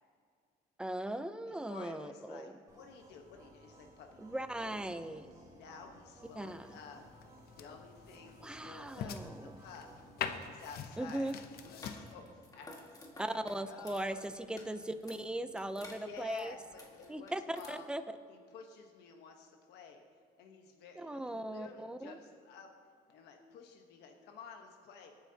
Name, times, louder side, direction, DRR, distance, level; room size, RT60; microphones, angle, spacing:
voice 1, 0.8-2.6 4.2-5.3 6.4-6.8 8.4-9.6 11.0-11.4 13.2-16.5 17.1-18.0 21.0-22.2, right 1 dB, 5° right, 10 dB, 0.6 m, -39 dB
voice 2, 1.5-5.0 5.5-7.0 7.6-9.9 10.5-12.8 13.6-14.7 15.9-17.9 18.3-20.0 20.4-22.7 23.1-25.1, left 5 dB, 80° left, 3 dB, 1.2 m, -52 dB
sound 1, 2.7-10.6, right 1 dB, 20° right, 3.5 m, -59 dB
sound 2, 6.2-12.1, left 7 dB, 65° left, 0.9 m, -45 dB
sound 3, 11.6-17.7, left 2 dB, 20° left, 2.0 m, -55 dB
24.0 x 9.1 x 2.9 m, 2.2 s
cardioid pair, 110°, 17 cm